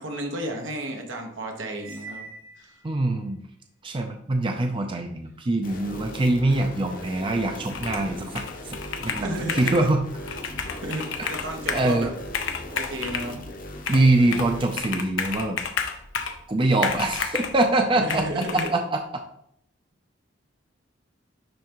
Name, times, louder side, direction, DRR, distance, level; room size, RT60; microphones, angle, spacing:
voice 1, 0.0-2.3 2.6-2.7 9.2-9.9 10.8-12.1 12.7-13.4 17.9-18.7, right 1 dB, 80° right, 2 dB, 1.2 m, -32 dB
Cymbal, 1.8-3.2, right 4 dB, 50° right, 1.1 m, -44 dB
voice 2, 2.8-3.4 3.8-10.0 11.2-11.3 11.7-12.1 13.9-15.6 16.5-18.4 18.7-19.2, right 2 dB, 25° right, 4 dB, 0.5 m, -24 dB
sound 1, 5.6-14.8, left 1 dB, 45° left, 0.8 m, -39 dB
Computer keyboard, 7.7-8.1 8.3-9.9 10.3-11.9 12.3-13.3 13.9-14.5 14.8-16.4 16.8-17.6 18.1-18.7, left 6 dB, 85° left, 0.7 m, -31 dB
10.5 x 3.5 x 3.0 m, 0.72 s
head